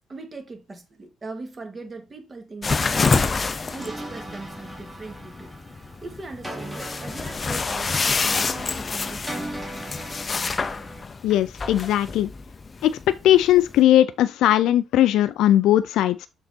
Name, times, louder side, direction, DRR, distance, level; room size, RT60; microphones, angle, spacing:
voice 1, 0.1-3.4 3.7-5.5 5.8-9.9, right 3 dB, 30° right, 1.9 m, -40 dB
sound 1, 2.6-13.8, left 4 dB, 35° left, 0.6 m, -27 dB
sound 2, 3.8-11.0, right 1 dB, 10° right, 1.9 m, -39 dB
voice 2, 11.2-12.3 12.8-13.0 13.2-16.3, left 12 dB, 85° left, 0.3 m, -19 dB
6.7 x 3.9 x 4.2 m
cardioid pair, 90°, 0 cm